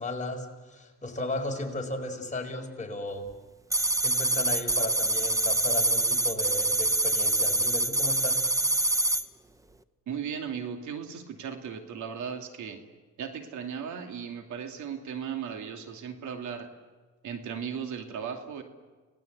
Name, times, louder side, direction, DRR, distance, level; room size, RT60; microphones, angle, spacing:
voice 1, 0.0-3.3 4.0-8.4, left 2 dB, 25° left, 3 dB, 4.8 m, -35 dB
sound 1, 3.7-9.2, right 2 dB, 10° right, 1.0 m, -25 dB
voice 2, 10.1-12.8 13.2-16.7 17.2-18.6, right 7 dB, 75° right, 5 dB, 2.6 m, -36 dB
30.0 x 19.0 x 8.2 m, 1.3 s
cardioid pair, 90°, 30 cm